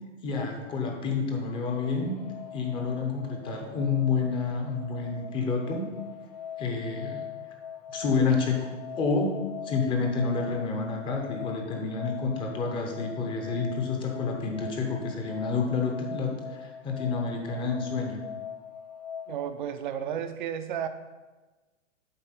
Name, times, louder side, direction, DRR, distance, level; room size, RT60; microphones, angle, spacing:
voice 1, 0.2-2.1 2.5-5.9 6.6-7.2 7.9-8.7 9.0-9.4 9.6-18.2, left 4 dB, 15° left, 1 dB, 0.7 m, -29 dB
sound 1, 1.3-19.4, left 8 dB, 45° left, 1.1 m, -42 dB
voice 2, 19.3-20.9, right 9 dB, 40° right, 9 dB, 0.5 m, -32 dB
7.9 x 4.3 x 5.7 m, 1.2 s
hypercardioid pair, 150°, 39 cm